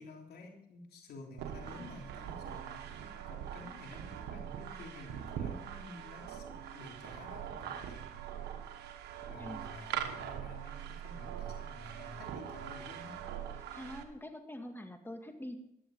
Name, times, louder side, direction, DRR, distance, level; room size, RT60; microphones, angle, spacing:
voice 1, 0.0-8.5 9.3-13.2, left 2 dB, 75° left, 1 dB, 3.2 m, -51 dB
sound 1, 1.4-14.0, right 9 dB, 85° right, 1.3 m, -42 dB
voice 2, 13.7-15.6, left 1 dB, 15° left, 5 dB, 2.0 m, -45 dB
14.0 x 11.0 x 5.4 m, 0.77 s
supercardioid pair, 55°, 17 cm